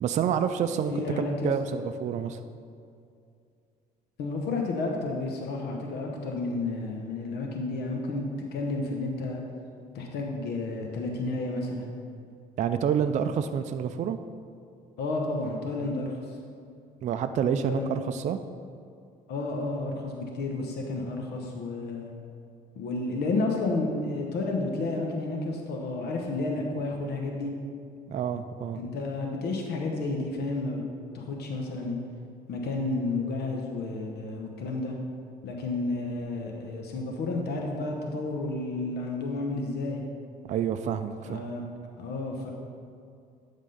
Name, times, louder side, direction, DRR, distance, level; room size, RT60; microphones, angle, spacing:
voice 1, 0.0-2.4 12.6-14.2 17.0-18.4 28.1-28.8 40.5-41.4, right 8 dB, 45° right, 9 dB, 0.4 m, -28 dB
voice 2, 0.9-1.5 4.2-9.4 9.9-11.9 15.0-16.4 17.6-17.9 19.3-22.1 22.8-27.5 28.8-30.8 31.1-32.0 32.5-34.9 35.4-40.0 41.2-41.6 42.0-42.5, left 2 dB, 75° left, 1 dB, 1.0 m, -31 dB
11.0 x 3.7 x 5.5 m, 2.4 s
cardioid pair, 110°, 17 cm